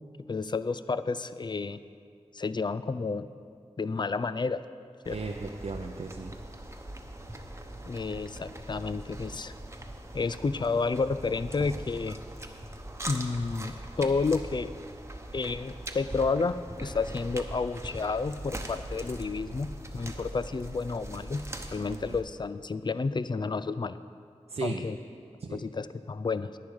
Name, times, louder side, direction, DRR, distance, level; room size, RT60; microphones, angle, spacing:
voice 1, 0.3-1.8 2.3-3.3 3.8-4.6 5.1-5.2 7.9-9.5 10.1-12.2 13.0-14.7 15.3-21.4 21.7-24.0 24.6-25.0 25.5-26.6, left 4 dB, 40° left, 14 dB, 0.4 m, -30 dB
sound 1, 5.0-22.2, right 1 dB, 25° right, 1.0 m, -41 dB
voice 2, 5.1-6.3 21.8-22.2 24.5-24.8 25.4-25.6, right 4 dB, 60° right, 1 dB, 0.6 m, -36 dB
10.5 x 9.6 x 4.9 m, 2.3 s
cardioid pair, 45°, 12 cm